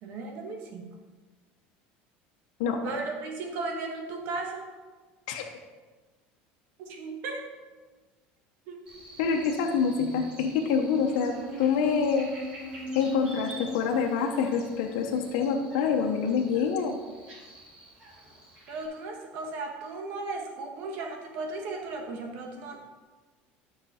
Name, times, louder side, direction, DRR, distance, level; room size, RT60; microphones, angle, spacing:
voice 1, 0.0-0.9 2.8-4.7 6.8-7.5 8.7-8.8 18.7-22.8, right 3 dB, 55° right, 2 dB, 1.6 m, -36 dB
Buzz, 8.9-18.9, equal, 25° right, 3.1 m, -42 dB
voice 2, 9.2-12.3 12.9-17.0, left 6 dB, 85° left, 1 dB, 1.1 m, -26 dB
12.0 x 6.1 x 4.3 m, 1.3 s
cardioid pair, 175°, 4 cm